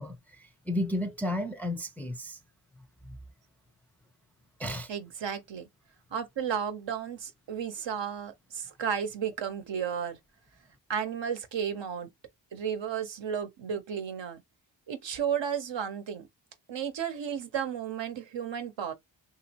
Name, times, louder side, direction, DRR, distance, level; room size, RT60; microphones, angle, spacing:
voice 1, 0.0-2.4 3.0-3.2 4.6-4.9, left 1 dB, 5° left, 0.4 m, -33 dB
voice 2, 4.9-5.7 6.1-10.2 10.9-12.1 12.5-14.4 14.9-16.3 16.7-18.9, right 8 dB, 75° right, 0.9 m, -33 dB
3.0 x 2.6 x 2.9 m
wide cardioid pair, 90°, 45 cm